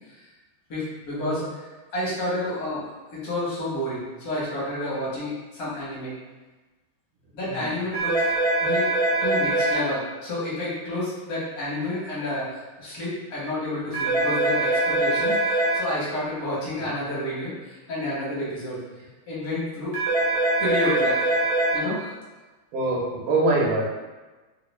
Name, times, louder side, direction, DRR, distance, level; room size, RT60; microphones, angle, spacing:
voice 1, 0.7-6.1 7.3-8.3 8.6-8.9 9.2-18.8 19.3-20.0 20.6-21.3 21.7-22.1, left 1 dB, 50° left, -8 dB, 1.4 m, -30 dB
sound 1, 7.9-9.8 13.9-15.8 19.9-21.8, right 2 dB, 35° right, 0.4 m, -23 dB
voice 2, 22.7-23.8, right 2 dB, 65° right, -3 dB, 0.9 m, -24 dB
3.3 x 2.4 x 3.0 m, 1.2 s
omnidirectional pair, 2.3 m